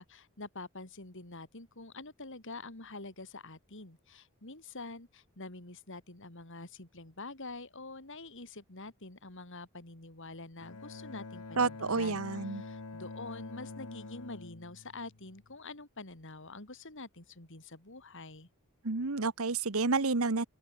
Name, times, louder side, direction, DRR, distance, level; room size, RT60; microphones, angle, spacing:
voice 1, 0.0-18.5, left 3 dB, 60° left, 3.6 m, -46 dB
Bowed string instrument, 10.6-15.6, left 3 dB, 85° left, 1.2 m, -46 dB
voice 2, 11.6-12.6 18.8-20.4, right 4 dB, 70° right, 1.2 m, -30 dB
open air
head